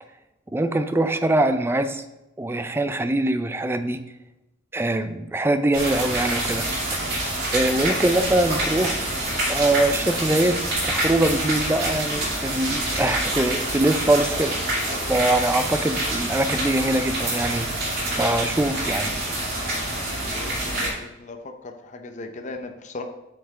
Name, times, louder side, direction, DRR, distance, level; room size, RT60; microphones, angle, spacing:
voice 1, 0.5-2.0 2.4-4.1 4.7-7.0 7.5-9.0 9.5-14.6 15.1-17.7 18.2-19.1, right 1 dB, 10° right, 10 dB, 0.4 m, -23 dB
sound 1, 5.7-20.9, right 1 dB, 55° right, 2.2 m, -26 dB
voice 2, 20.2-23.0, left 3 dB, 40° left, 5 dB, 0.6 m, -38 dB
7.3 x 5.8 x 3.4 m, 0.96 s
head